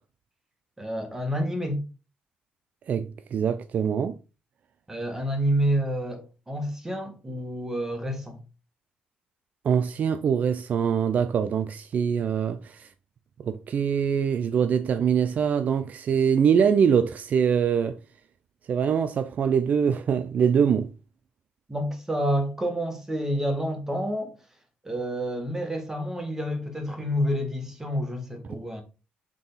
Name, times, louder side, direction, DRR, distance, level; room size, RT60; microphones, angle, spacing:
voice 1, 0.8-1.8 4.9-8.4 21.7-24.3 24.8-28.8, equal, 15° right, 1.7 m, -28 dB
voice 2, 2.9-4.1 9.6-12.9 13.5-18.0 18.7-20.9, right 7 dB, 55° right, 0.4 m, -23 dB
6.2 x 3.8 x 4.0 m
cardioid pair, 110°, 3 cm